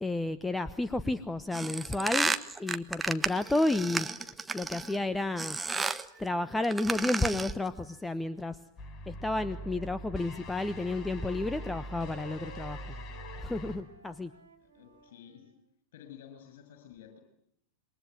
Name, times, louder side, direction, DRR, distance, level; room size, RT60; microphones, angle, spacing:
voice 1, 0.0-2.3 2.6-4.1 4.5-5.6 6.2-8.6 9.1-12.8 13.4-14.3, left 2 dB, 5° left, 13 dB, 1.1 m, -31 dB
sound 1, 1.5-5.0 5.4-6.1 6.6-7.6, right 3 dB, 10° right, 1.3 m, -32 dB
sound 2, 8.8-13.8, equal, 30° left, 3.8 m, -43 dB
Wind instrument woodwind instrument, 9.1-15.6, right 5 dB, 75° right, 3.8 m, -54 dB
voice 2, 14.6-15.5 15.9-17.2, left 9 dB, 55° left, 7 dB, 7.6 m, -51 dB
27.5 x 23.5 x 9.2 m, 0.72 s
figure-of-eight pair, 90°, 0 cm